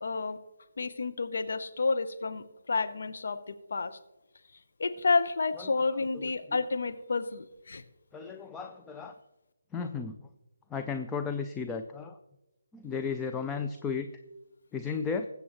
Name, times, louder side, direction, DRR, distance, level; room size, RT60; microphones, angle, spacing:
voice 1, 0.0-0.4 0.8-4.0 4.8-7.8, left 4 dB, 60° left, 10 dB, 0.7 m, -30 dB
voice 2, 6.1-6.6 8.1-9.1 9.7-10.2 10.7-12.2 12.7-14.1 14.7-15.3, left 5 dB, 10° left, 6 dB, 0.4 m, -34 dB
20.5 x 8.1 x 3.0 m, 0.97 s
figure-of-eight pair, 150°, 0 cm